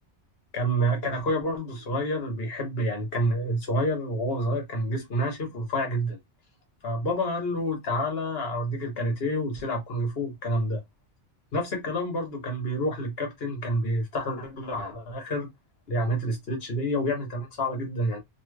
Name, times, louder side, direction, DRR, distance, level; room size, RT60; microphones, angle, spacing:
voice 1, 0.5-6.2 6.8-10.8 11.5-15.5 15.9-18.2, equal, 60° left, 1.3 m, -28 dB
3.1 x 3.0 x 2.2 m
omnidirectional pair, 1.2 m